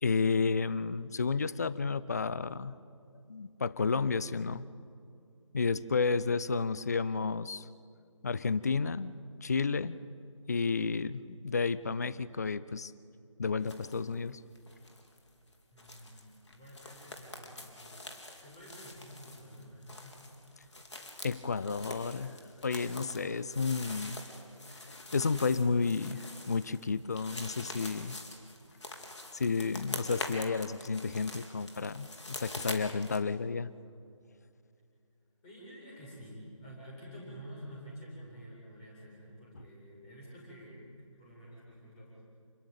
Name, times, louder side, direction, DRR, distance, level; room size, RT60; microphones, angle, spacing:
voice 1, 0.0-2.8 3.3-4.7 5.5-7.7 8.2-9.1 9.4-10.0 10.5-12.9 13.4-14.4 21.2-22.4 22.6-24.2 24.9-28.2 29.3-33.7, left 4 dB, 30° left, 17 dB, 0.6 m, -31 dB
kroky v listi footsteps leaves, 13.6-14.0 14.3-33.2, left 2 dB, 60° left, 4.3 m, -45 dB
voice 2, 15.7-20.2 35.4-40.9 41.2-42.2, equal, 15° left, -5 dB, 7.8 m, -49 dB
28.5 x 21.5 x 9.2 m, 2.5 s
figure-of-eight pair, 160°, 17 cm